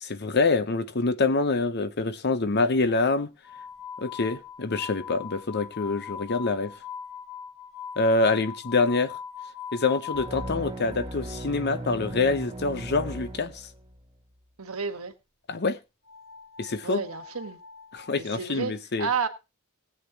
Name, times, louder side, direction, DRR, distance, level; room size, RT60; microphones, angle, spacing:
voice 1, 0.0-3.3 4.0-6.7 8.0-9.2 9.7-13.7 15.5-15.8 16.6-17.0 17.9-19.1, left 3 dB, 50° left, 0.8 m, -26 dB
sound 1, 3.4-10.8 12.4-12.5 12.8-12.9 13.6-13.7 14.8-15.0 16.0-18.2, left 7 dB, 90° left, 5.7 m, -41 dB
sound 2, 10.1-14.0, right 1 dB, 20° right, 1.9 m, -37 dB
voice 2, 14.6-15.1 16.8-17.6 18.1-19.3, right 5 dB, 80° right, 1.4 m, -31 dB
19.5 x 8.1 x 2.9 m
head